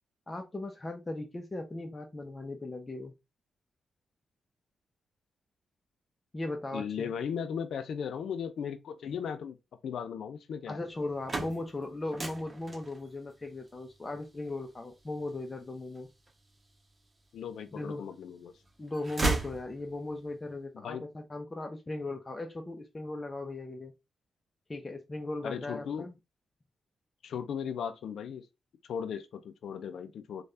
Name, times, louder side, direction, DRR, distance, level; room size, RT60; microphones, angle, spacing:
voice 1, 0.3-3.1 6.3-7.1 10.7-16.1 17.7-18.1 18.8-23.9 24.7-26.1, left 2 dB, 30° left, 0.6 m, -38 dB
voice 2, 6.7-9.6 9.8-10.8 17.3-18.5 20.7-21.1 25.4-26.1 27.2-28.5 28.9-30.4, left 7 dB, 75° left, 0.4 m, -37 dB
sound 1, 11.0-16.9 17.5-18.3 18.6-20.2, right 2 dB, 35° right, 1.0 m, -37 dB
3.2 x 2.3 x 2.7 m
supercardioid pair, 55°, 0 cm